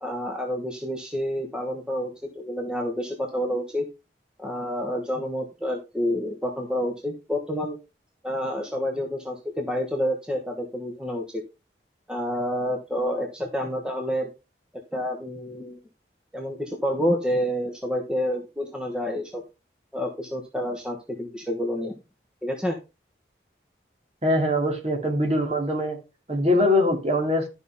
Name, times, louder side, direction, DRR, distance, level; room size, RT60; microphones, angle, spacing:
voice 1, 0.0-3.8 4.4-7.8 8.2-11.4 12.1-14.3 14.9-15.8 16.3-19.4 19.9-21.9 22.4-22.8, equal, 5° right, 1.2 m, -28 dB
voice 2, 24.2-26.0 26.3-27.5, left 1 dB, 35° right, 2.5 m, -22 dB
12.0 x 5.6 x 3.5 m
head